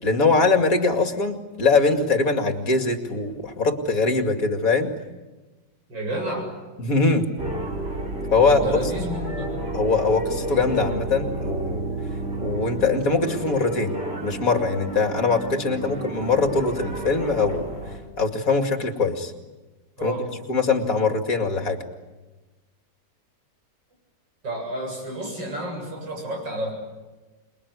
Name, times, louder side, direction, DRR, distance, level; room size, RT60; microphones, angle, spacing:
voice 1, 0.0-4.9 6.8-7.3 8.3-8.8 9.7-11.8 12.4-13.9 14.2-17.7 18.2-19.3 20.0-20.1 20.5-21.8, left 4 dB, 50° left, 6 dB, 2.8 m, -22 dB
voice 2, 5.9-6.5 8.4-9.6 15.6-15.9 20.0-20.3 24.4-26.7, right 1 dB, 80° right, 1 dB, 8.4 m, -30 dB
sound 1, 7.4-18.0, right 2 dB, 35° right, 4.0 m, -31 dB
27.5 x 22.0 x 9.8 m, 1.2 s
omnidirectional pair, 2.0 m